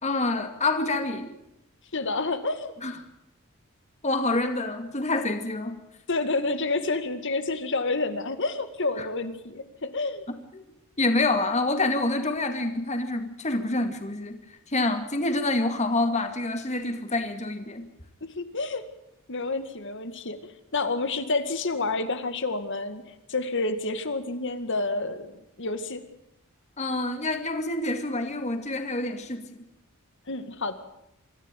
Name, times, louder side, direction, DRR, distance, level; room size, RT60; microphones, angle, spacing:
voice 1, 0.0-1.3 2.8-3.0 4.0-5.8 9.0-9.1 10.5-10.6 11.0-14.4 14.7-17.8 26.8-29.4, left 2 dB, 35° left, 7 dB, 2.3 m, -27 dB
voice 2, 1.9-2.7 6.1-10.2 18.2-18.8 19.3-23.0 23.3-26.0 30.3-30.7, left 3 dB, 60° left, 10 dB, 2.1 m, -29 dB
25.0 x 14.0 x 9.2 m, 0.85 s
head